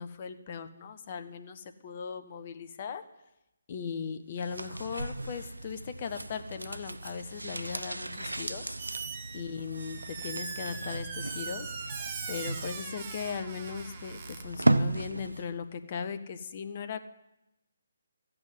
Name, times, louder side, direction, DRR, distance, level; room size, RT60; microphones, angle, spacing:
voice 1, 0.0-3.0 3.7-8.6 9.3-17.0, left 6 dB, 35° left, 10 dB, 1.1 m, -38 dB
sound 1, 4.3-15.6 15.8-15.9, right 2 dB, 80° right, 0.8 m, -35 dB
Squeak, 8.1-8.5 8.8-14.4, right 5 dB, 30° right, 1.5 m, -41 dB
14.0 x 9.0 x 9.6 m, 0.93 s
figure-of-eight pair, 140°, 0 cm